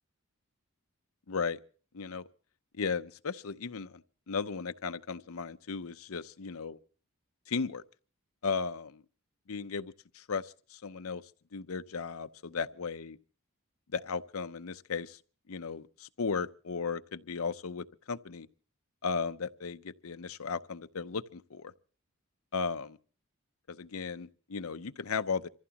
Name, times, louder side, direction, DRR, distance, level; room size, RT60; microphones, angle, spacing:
voice 1, 1.3-1.6 1.9-2.2 2.8-4.0 4.3-6.8 7.5-7.8 8.4-9.0 9.5-9.9 10.3-11.2 11.5-13.2 13.9-15.2 15.5-18.5 19.0-21.7 22.5-23.0 23.7-25.5, left 5 dB, 70° left, 0.7 m, -35 dB
26.0 x 15.0 x 2.9 m
head